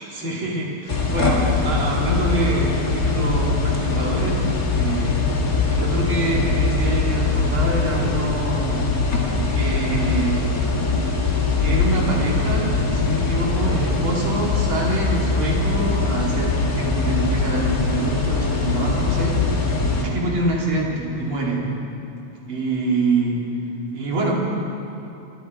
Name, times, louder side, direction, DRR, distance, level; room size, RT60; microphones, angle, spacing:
voice 1, 0.0-4.4 4.7-5.2 5.7-8.8 9.5-10.5 11.6-21.6 22.5-23.4 23.9-24.3, right 2 dB, 45° right, -3 dB, 2.9 m, -26 dB
sound 1, 0.9-20.0, left 3 dB, 35° left, 1.7 m, -22 dB
25.0 x 10.5 x 4.6 m, 2.8 s
omnidirectional pair, 3.4 m